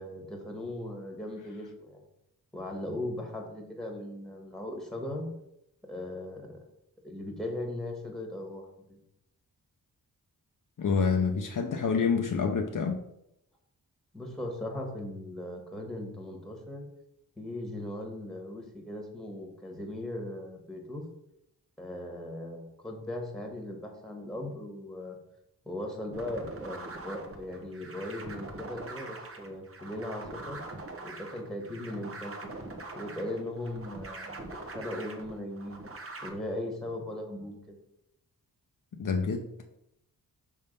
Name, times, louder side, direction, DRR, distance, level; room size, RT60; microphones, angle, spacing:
voice 1, 0.0-2.0 2.5-5.3 5.9-6.6 7.0-9.0 14.1-16.8 17.4-21.0 21.8-25.2 25.6-30.6 31.0-32.5 32.9-35.8 36.2-37.8, left 1 dB, ahead, 1 dB, 1.5 m, -38 dB
voice 2, 10.8-13.0 39.0-39.4, left 5 dB, 55° left, 3 dB, 0.7 m, -27 dB
sound 1, 26.1-36.3, right 2 dB, 35° right, 0.9 m, -43 dB
5.4 x 3.5 x 5.2 m, 0.79 s
wide cardioid pair, 95°, 38 cm